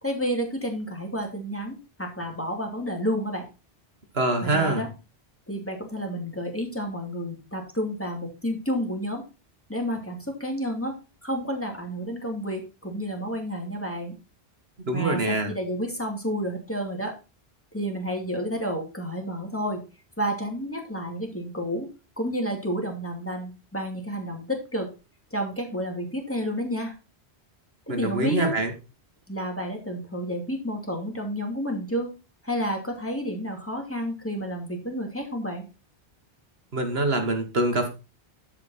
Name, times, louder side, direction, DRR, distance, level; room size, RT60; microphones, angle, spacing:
voice 1, 0.0-3.4 4.4-4.9 5.5-9.2 9.7-11.0 11.2-14.2 14.9-17.1 17.7-19.8 20.2-21.9 22.2-24.9 25.3-26.9 27.9-28.5 29.3-32.1 32.4-35.6, equal, 10° left, 2 dB, 2.6 m, -30 dB
voice 2, 4.1-4.8 14.9-15.5 27.9-28.7 36.7-37.9, right 2 dB, 65° right, 5 dB, 2.1 m, -24 dB
12.5 x 5.2 x 4.3 m, 0.30 s
omnidirectional pair, 1.1 m